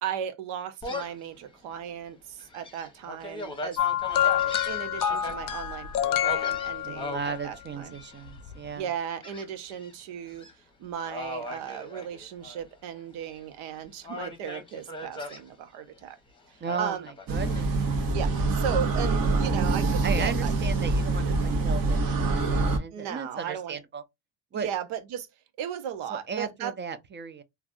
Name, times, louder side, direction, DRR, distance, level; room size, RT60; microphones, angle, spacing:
voice 1, 0.0-3.8 4.2-7.9 8.8-10.5 10.8-16.2 16.5-17.1 18.1-20.5 22.9-23.8 24.5-25.3 25.6-26.7, right 9 dB, 80° right, 0.9 m, -36 dB
Gull seagull, 0.8-1.2 1.8-1.9 2.4-5.3 6.2-7.4 7.9-8.4 9.2-9.9 10.3-10.5 11.1-12.6 12.9-13.7 14.0-15.4 16.6-17.7, left 2 dB, 10° left, 1.0 m, -38 dB
sound 1, 3.8-7.3 8.4-8.5, left 11 dB, 45° left, 0.5 m, -27 dB
voice 2, 6.8-8.9 16.6-17.7 20.0-24.0 24.5-24.7 26.1-27.4, right 5 dB, 25° right, 0.4 m, -35 dB
sound 2, 17.3-22.8, right 3 dB, 45° right, 0.9 m, -25 dB
3.3 x 2.3 x 2.4 m
cardioid pair, 105°, 49 cm